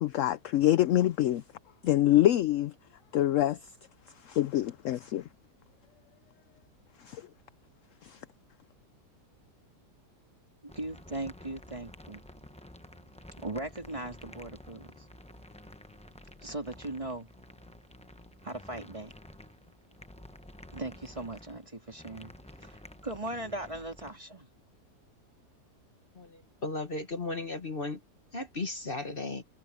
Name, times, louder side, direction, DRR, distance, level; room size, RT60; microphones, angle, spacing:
voice 1, 0.0-1.4 1.8-2.7 3.1-3.6 4.2-5.3 7.0-7.3 8.0-8.2, left 14 dB, 65° left, 0.8 m, -25 dB
voice 2, 10.6-12.2 13.4-15.0 16.4-17.3 18.4-19.1 20.7-22.3 22.6-24.5, right 2 dB, 20° right, 2.5 m, -39 dB
sound 1, 10.7-24.1, left 1 dB, 5° left, 0.6 m, -51 dB
voice 3, 26.2-28.0 28.3-29.4, left 2 dB, 35° left, 1.6 m, -35 dB
omnidirectional pair, 1.7 m